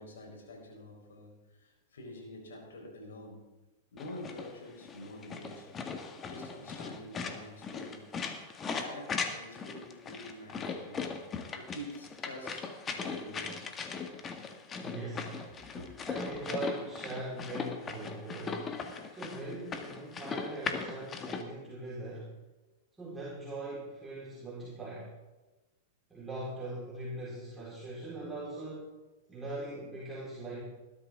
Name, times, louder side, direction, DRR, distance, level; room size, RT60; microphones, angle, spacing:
voice 1, 0.0-3.5 3.9-5.7 6.2-8.1 8.7-13.6 15.7-15.9, left 1 dB, 80° left, 1 dB, 4.7 m, -47 dB
sound 1, 4.0-21.4, left 5 dB, 25° left, 1.7 m, -39 dB
voice 2, 14.7-15.4 16.1-18.7 19.1-22.4 23.0-25.1 26.1-28.9 29.3-30.6, right 2 dB, 10° right, -7 dB, 4.6 m, -41 dB
19.5 x 12.5 x 3.8 m, 1.1 s
hypercardioid pair, 110°, 0 cm